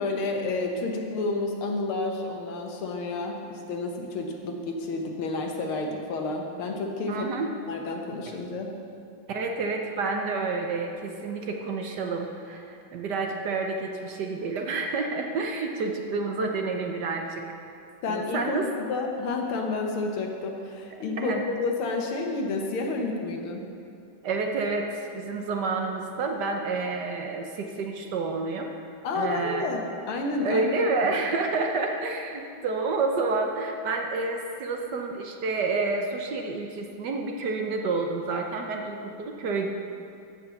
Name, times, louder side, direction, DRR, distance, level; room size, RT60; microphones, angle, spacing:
voice 1, 0.0-7.3 7.7-8.7 18.0-23.6 29.0-30.7, left 3 dB, 85° left, 2 dB, 2.0 m, -30 dB
voice 2, 7.1-7.5 9.3-17.4 18.1-18.7 21.2-21.4 24.2-28.7 29.1-29.7 30.4-39.7, right 3 dB, 65° right, 3 dB, 1.3 m, -29 dB
14.0 x 5.0 x 6.9 m, 2.5 s
omnidirectional pair, 2.3 m